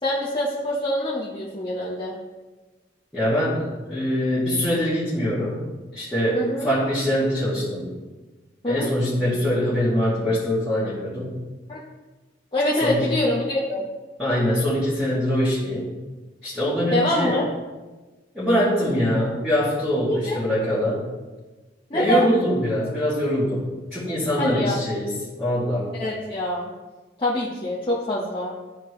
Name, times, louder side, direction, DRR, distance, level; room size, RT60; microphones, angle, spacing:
voice 1, 0.0-2.2 6.3-6.7 8.6-8.9 11.7-11.8 12.5-13.9 16.9-17.5 20.1-20.4 21.9-22.3 24.4-24.8 25.9-26.7 27.2-28.5, left 1 dB, 25° left, -7 dB, 1.0 m, -25 dB
voice 2, 3.1-5.6 5.9-7.9 8.7-11.4 12.8-13.1 14.2-16.0 16.4-17.4 18.3-21.1 21.9-23.6 23.9-25.1 25.4-25.9, equal, 5° left, -13 dB, 2.2 m, -23 dB
12.5 x 4.4 x 3.2 m, 1.2 s
head